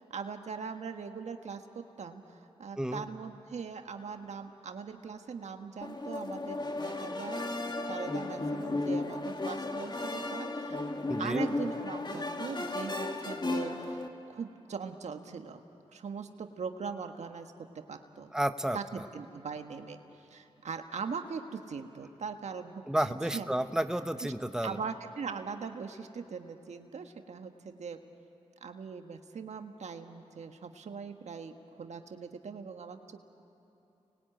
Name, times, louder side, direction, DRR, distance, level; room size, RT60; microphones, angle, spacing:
voice 1, 0.0-7.5 7.9-10.9 11.2-15.6 15.9-17.5 17.9-18.3 18.7-18.8 19.1-23.5 24.6-28.0 28.6-33.2, right 5 dB, 75° right, 6 dB, 1.5 m, -41 dB
sound 1, 5.8-14.1, left 2 dB, 40° left, 2.2 m, -35 dB
voice 2, 11.1-11.5 18.3-18.8 22.9-24.8, right 1 dB, 5° right, 9 dB, 1.1 m, -31 dB
30.0 x 21.5 x 9.0 m, 2.9 s
cardioid pair, 40°, 12 cm